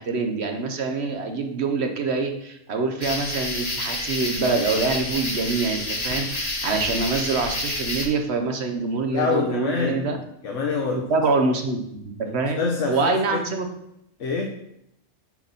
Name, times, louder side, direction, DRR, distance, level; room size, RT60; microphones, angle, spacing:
voice 1, 0.0-10.2 11.1-12.6 12.9-13.7, right 3 dB, 55° right, 5 dB, 1.1 m, -25 dB
sound 1, 3.0-8.0, left 1 dB, 30° left, 1.3 m, -29 dB
voice 2, 9.1-11.1 12.2-13.4 14.2-14.5, left 4 dB, 60° left, 1 dB, 1.1 m, -26 dB
7.2 x 5.8 x 4.1 m, 0.77 s
omnidirectional pair, 1.4 m